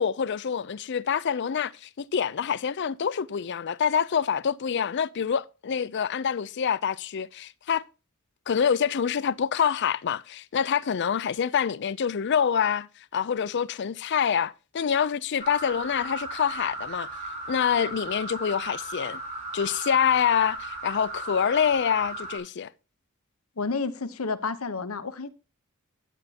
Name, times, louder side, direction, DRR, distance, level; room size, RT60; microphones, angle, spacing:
voice 1, 0.0-7.8 8.5-12.9 13.1-17.1 17.5-19.2 19.5-22.7, left 7 dB, 55° left, 0.4 m, -26 dB
sound 1, 15.4-22.4, right 2 dB, 35° right, 4.1 m, -36 dB
voice 2, 23.6-25.3, left 4 dB, 85° left, 0.9 m, -30 dB
12.0 x 9.1 x 2.8 m
head